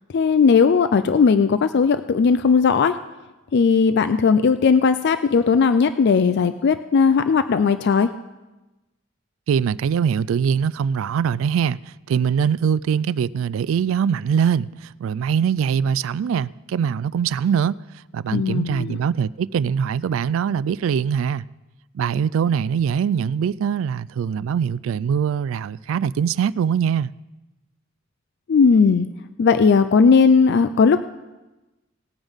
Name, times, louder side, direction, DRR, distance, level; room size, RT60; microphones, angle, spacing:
voice 1, 0.1-3.0 3.5-8.1 18.3-19.0 28.5-29.1 29.4-31.0, left 5 dB, 55° left, 0.4 m, -17 dB
voice 2, 9.5-17.8 18.1-21.4 21.9-27.1, right 7 dB, 70° right, 0.3 m, -22 dB
18.5 x 8.9 x 3.6 m
head